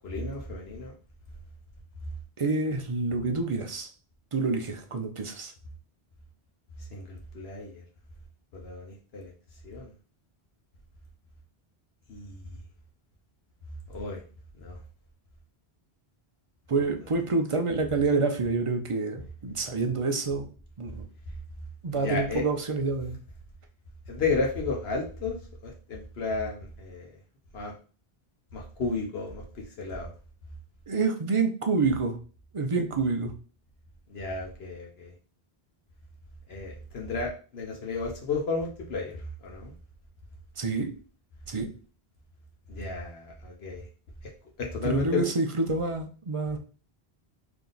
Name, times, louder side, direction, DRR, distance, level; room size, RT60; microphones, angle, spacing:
voice 1, 0.0-0.9 6.9-7.8 8.5-9.3 9.6-9.9 12.1-12.6 13.9-14.2 14.6-14.8 21.9-22.4 24.1-25.4 25.6-27.1 27.5-27.7 28.5-30.1 34.1-35.1 36.5-39.2 39.4-39.7 42.7-43.8 44.6-45.3, left 3 dB, 75° left, 0 dB, 1.1 m, -33 dB
voice 2, 2.4-3.9 4.3-5.5 16.7-20.5 20.8-21.1 21.8-23.2 30.9-32.2 32.5-33.3 40.6-40.9 41.5-41.7 44.8-46.6, right 3 dB, 40° right, 4 dB, 0.5 m, -27 dB
3.5 x 2.9 x 3.9 m, 0.38 s
omnidirectional pair, 1.1 m